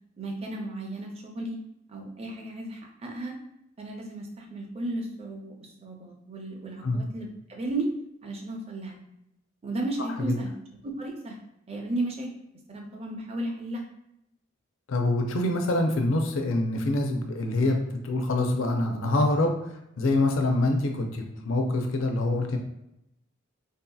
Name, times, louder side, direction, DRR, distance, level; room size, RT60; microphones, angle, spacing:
voice 1, 0.2-1.6 1.9-3.4 3.8-7.9 8.2-9.0 9.6-10.5 10.8-11.4 11.7-12.3 12.7-13.8, right 2 dB, 30° right, 1 dB, 0.5 m, -34 dB
voice 2, 14.9-19.6 20.0-22.6, left 2 dB, 70° left, 3 dB, 0.5 m, -25 dB
3.8 x 2.7 x 2.3 m, 0.82 s
head